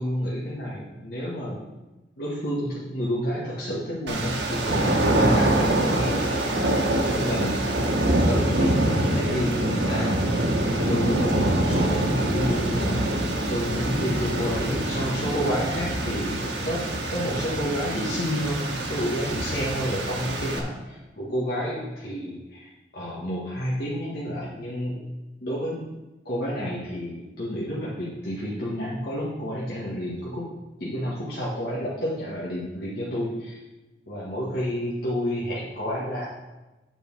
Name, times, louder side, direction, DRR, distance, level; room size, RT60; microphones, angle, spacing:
voice 1, 0.0-1.6 2.2-6.6 7.0-7.7 8.3-13.0 13.5-16.8 17.1-25.1 25.4-25.9 26.3-30.5 30.8-33.6 34.1-36.3, equal, 60° left, -7 dB, 1.8 m, -30 dB
sound 1, 4.1-20.6, right 1 dB, 85° right, 1.4 m, -25 dB
9.4 x 5.0 x 6.2 m, 1.1 s
head